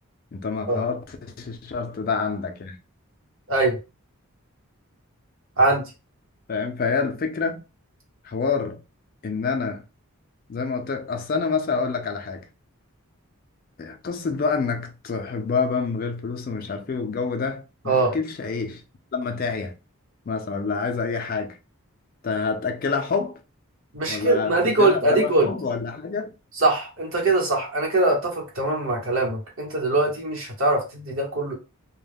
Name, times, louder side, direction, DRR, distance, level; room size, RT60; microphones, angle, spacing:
voice 1, 0.3-2.8 6.5-7.6 8.2-8.8 9.2-9.8 10.5-12.5 13.8-18.8 19.1-19.7 20.3-21.6 22.2-23.4 24.1-26.3, left 5 dB, 40° left, 0.3 m, -27 dB
voice 2, 5.6-5.9 17.9-18.2 23.9-25.5 26.6-31.5, right 2 dB, 60° right, 0.9 m, -22 dB
2.2 x 2.0 x 3.3 m
head